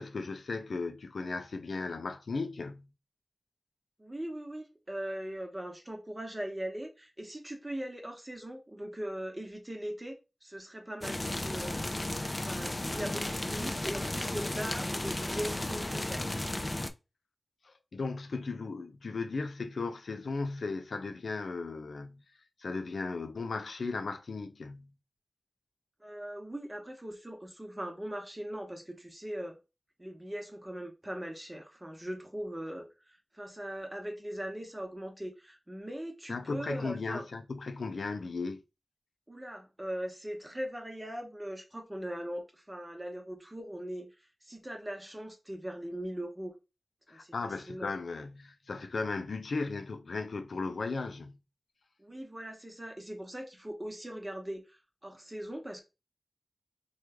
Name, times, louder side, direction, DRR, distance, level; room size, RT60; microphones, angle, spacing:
voice 1, 0.0-2.9 17.9-22.2 22.6-24.9 36.3-38.6 47.1-51.4, left 3 dB, 90° left, 0.4 m, -36 dB
voice 2, 4.0-11.9 12.4-16.3 26.0-29.6 30.0-37.2 39.3-44.1 44.4-46.5 47.1-47.9 52.0-55.8, right 1 dB, 20° right, 1.0 m, -40 dB
sound 1, 11.0-16.9, left 1 dB, 30° left, 0.4 m, -34 dB
3.1 x 2.4 x 3.4 m
wide cardioid pair, 50°, 0 cm